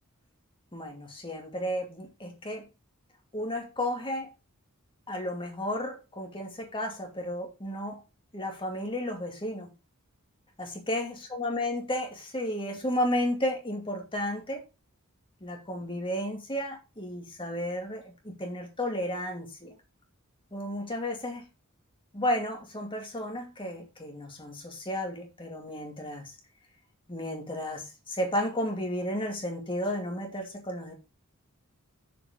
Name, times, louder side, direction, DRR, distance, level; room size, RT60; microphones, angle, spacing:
voice 1, 0.7-2.7 3.3-4.3 5.1-8.0 8.3-9.7 10.6-14.6 15.4-19.7 20.5-21.5 22.1-26.3 27.1-30.9, left 1 dB, 25° left, 2.5 m, -33 dB
7.1 x 4.8 x 6.5 m
head